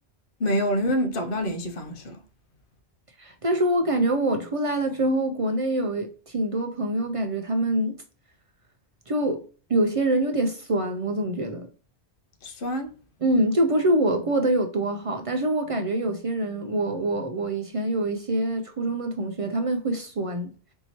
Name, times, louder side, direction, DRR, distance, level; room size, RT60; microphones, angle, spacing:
voice 1, 0.4-2.2 12.4-12.9, equal, 60° left, 0.9 m, -26 dB
voice 2, 3.2-8.0 9.1-9.4 9.7-11.7 13.2-20.5, right 1 dB, 45° right, 0.4 m, -25 dB
4.5 x 2.7 x 2.8 m
omnidirectional pair, 1.0 m